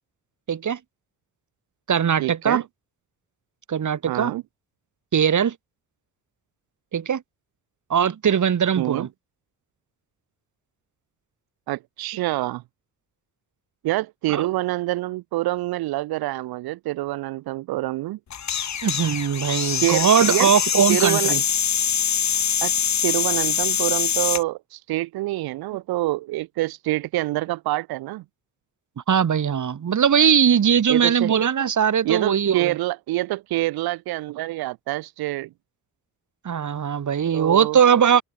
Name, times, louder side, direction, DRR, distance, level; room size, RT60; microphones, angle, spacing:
voice 1, 0.5-0.8 1.9-2.6 3.7-4.3 5.1-5.5 6.9-7.2 7.9-9.1 14.3-14.5 18.8-21.4 29.1-32.7 36.4-38.2, right 8 dB, 55° right, 2.4 m, -20 dB
voice 2, 2.2-2.6 4.1-4.4 8.8-9.1 11.7-12.6 13.8-18.2 19.8-20.5 20.9-21.4 22.6-22.7 23.0-28.2 30.9-31.3 32.0-35.5 37.3-37.8, right 17 dB, 90° right, 1.1 m, -26 dB
sound 1, 18.3-24.4, left 8 dB, 50° left, 1.3 m, -23 dB
open air
supercardioid pair, 60°, 36 cm